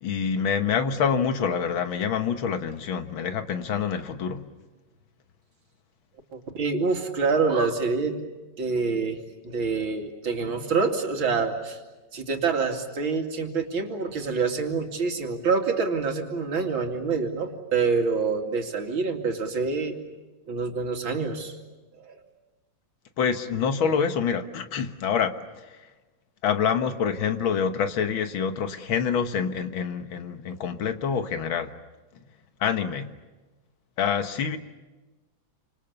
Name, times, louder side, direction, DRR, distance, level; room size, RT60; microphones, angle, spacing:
voice 1, 0.0-4.5 23.2-25.4 25.6-25.8 26.4-31.7 32.6-33.1 34.0-34.6, left 7 dB, 85° left, 2.2 m, -26 dB
voice 2, 6.3-8.2 8.6-9.2 9.4-11.8 12.1-19.9 20.5-21.6 22.0-22.2, right 4 dB, 90° right, 3.4 m, -26 dB
29.0 x 26.5 x 6.9 m
omnidirectional pair, 2.1 m